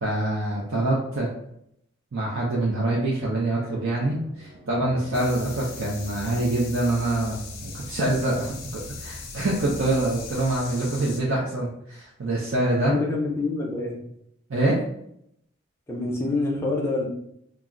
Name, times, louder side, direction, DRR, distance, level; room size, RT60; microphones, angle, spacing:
voice 1, 0.0-1.3 2.1-12.9 14.5-14.8, right 2 dB, 75° right, -5 dB, 0.5 m, -25 dB
sound 1, 3.6-10.6, left 1 dB, 15° right, 0.9 m, -46 dB
sound 2, 5.1-11.2, left 4 dB, 80° left, 0.5 m, -39 dB
voice 2, 12.9-14.0 15.9-17.1, left 2 dB, 10° left, -2 dB, 0.4 m, -26 dB
2.4 x 2.0 x 3.6 m, 0.74 s
head